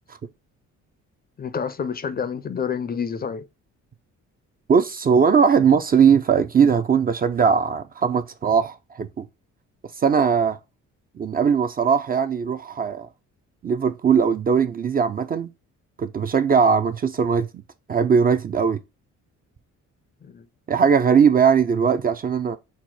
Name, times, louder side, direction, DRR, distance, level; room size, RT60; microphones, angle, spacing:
voice 1, 1.4-3.5 20.2-20.5, left 6 dB, 30° left, 0.4 m, -28 dB
voice 2, 4.7-9.3 10.0-10.6 11.2-13.1 13.6-15.5 16.0-17.5 17.9-18.8 20.7-22.6, right 6 dB, 30° right, 0.4 m, -19 dB
4.3 x 2.1 x 4.4 m
cardioid pair, 90°, 30 cm